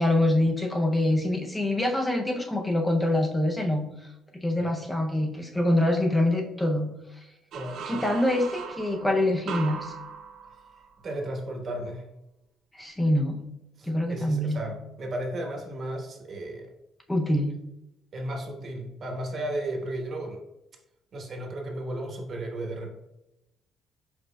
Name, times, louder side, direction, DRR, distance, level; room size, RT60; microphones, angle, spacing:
voice 1, 0.0-3.9 4.3-6.9 7.9-9.9 12.8-13.4 13.8-14.6 17.1-17.6, left 1 dB, 10° left, 2 dB, 0.5 m, -25 dB
voice 2, 7.5-7.9 11.0-12.1 13.8-16.7 18.1-20.4 21.1-22.9, right 1 dB, 45° right, 1 dB, 1.1 m, -34 dB
sound 1, 7.5-11.1, right 5 dB, 65° right, 0.4 m, -38 dB
5.0 x 4.3 x 2.2 m, 0.90 s
cardioid pair, 100°, 0 cm